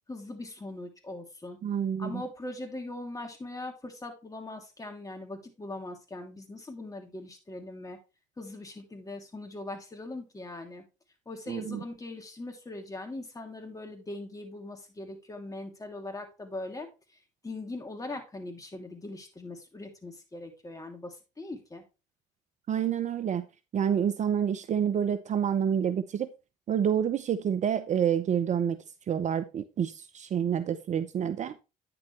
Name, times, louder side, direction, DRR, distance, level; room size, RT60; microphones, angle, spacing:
voice 1, 0.1-1.6 2.0-8.0 8.4-10.8 11.2-21.8, left 2 dB, 20° left, 3 dB, 3.0 m, -41 dB
voice 2, 1.6-2.2 11.5-11.8 22.7-23.5 23.7-26.3 26.7-31.5, right 8 dB, 40° right, 13 dB, 0.7 m, -28 dB
9.5 x 7.0 x 3.3 m, 0.28 s
hypercardioid pair, 65°, 18 cm